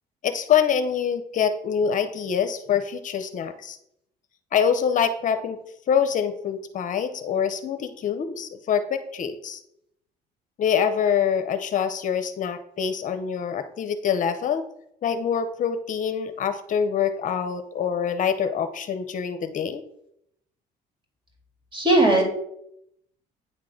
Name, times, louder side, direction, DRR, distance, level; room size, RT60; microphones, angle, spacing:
voice 1, 0.2-3.8 4.5-5.6 5.9-9.6 10.6-14.6 15.0-19.8, left 7 dB, 50° left, 10 dB, 0.7 m, -25 dB
voice 2, 21.7-22.2, right 2 dB, 30° right, 1 dB, 3.1 m, -18 dB
9.0 x 3.7 x 6.4 m, 0.77 s
cardioid pair, 110°, 17 cm